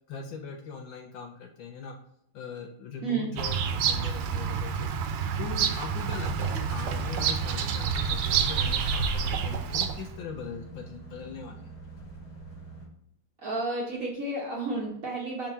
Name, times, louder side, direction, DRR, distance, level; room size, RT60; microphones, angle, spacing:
voice 1, 0.1-1.9 2.3-4.9 5.4-11.7, left 5 dB, 70° left, 3 dB, 1.2 m, -40 dB
Bird vocalization bird call bird song, 3.4-10.1, right 6 dB, 85° right, 1.5 m, -28 dB
sound 1, 5.9-12.9, right 3 dB, 40° left, 1.5 m, -45 dB
voice 2, 13.4-15.5, right 3 dB, 50° right, -2 dB, 1.1 m, -31 dB
4.5 x 3.8 x 5.5 m, 0.72 s
omnidirectional pair, 2.4 m